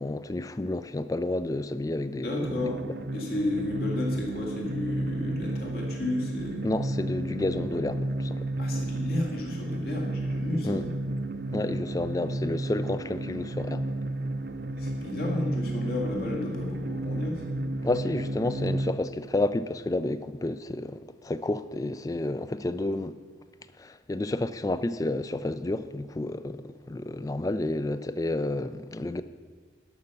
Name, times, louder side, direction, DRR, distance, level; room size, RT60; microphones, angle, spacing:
voice 1, 0.0-2.7 6.6-8.4 10.6-10.8 11.5-13.9 17.8-23.2 23.8-29.2, left 2 dB, 20° left, 0.3 m, -30 dB
voice 2, 2.2-2.8 3.1-6.6 8.6-10.8 14.8-17.6, left 2 dB, 60° left, 2.0 m, -32 dB
sound 1, 2.4-18.9, right 1 dB, 65° right, 0.6 m, -32 dB
12.0 x 5.9 x 6.7 m
head